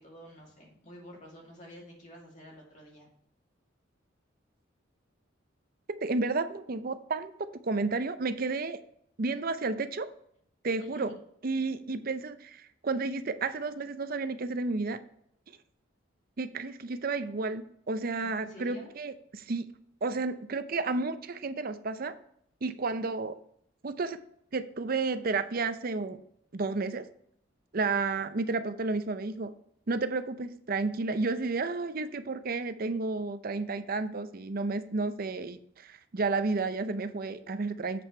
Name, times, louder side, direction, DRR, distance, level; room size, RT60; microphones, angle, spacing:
voice 1, 0.0-3.1 10.8-11.1 18.2-18.9, left 1 dB, 40° left, -2 dB, 2.4 m, -49 dB
voice 2, 6.0-7.3 7.6-8.8 9.2-10.1 10.6-11.1 11.4-15.0 16.4-19.7 20.0-22.2 22.6-23.4 23.8-24.2 24.5-26.2 26.5-27.1 27.7-29.5 29.9-38.0, right 3 dB, 50° right, 11 dB, 0.6 m, -31 dB
7.9 x 6.0 x 4.3 m, 0.68 s
head